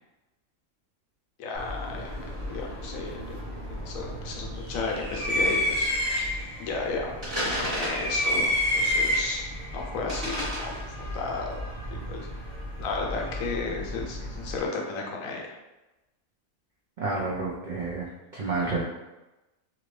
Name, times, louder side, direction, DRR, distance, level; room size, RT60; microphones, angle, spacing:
voice 1, 1.4-3.4 3.7-11.6 11.9-15.6, left 4 dB, 75° left, 0 dB, 1.0 m, -34 dB
sound 1, 1.5-14.6, left 1 dB, 20° right, 1.1 m, -30 dB
voice 2, 17.0-18.8, right 3 dB, 85° right, -5 dB, 0.4 m, -30 dB
2.8 x 2.5 x 3.1 m, 1.0 s
omnidirectional pair, 1.5 m